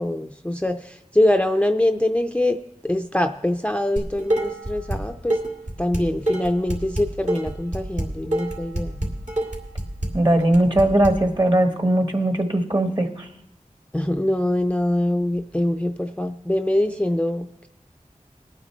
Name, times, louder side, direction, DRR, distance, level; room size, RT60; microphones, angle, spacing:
voice 1, 0.0-2.6 2.8-5.4 5.8-9.0 13.9-17.7, left 1 dB, 10° left, 6 dB, 0.5 m, -23 dB
Dishes pots and pans, 4.0-5.0 5.3-11.1, right 1 dB, 65° right, 2.2 m, -26 dB
voice 2, 10.1-13.3, right 1 dB, 35° right, 5 dB, 1.3 m, -19 dB
20.5 x 9.0 x 3.2 m, 0.87 s
wide cardioid pair, 50°, 13 cm